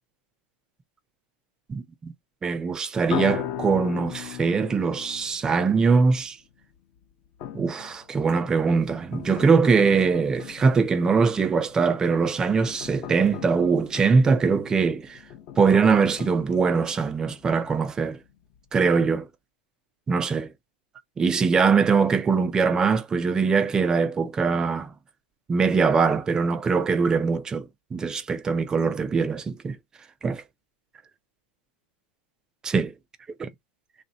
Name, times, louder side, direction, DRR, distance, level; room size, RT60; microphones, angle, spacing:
voice 1, 1.7-2.1 2.4-6.4 7.5-15.2 15.6-18.2 18.7-19.3 20.1-20.5 21.2-24.9 25.5-29.8 30.2-30.4 32.6-32.9, right 5 dB, 10° right, 0.4 m, -22 dB
sound 1, 3.1-6.1 7.4-17.8 18.2-18.3 18.5-18.8, left 10 dB, 30° left, 0.8 m, -38 dB
3.2 x 2.7 x 4.0 m
supercardioid pair, 170°, 6 cm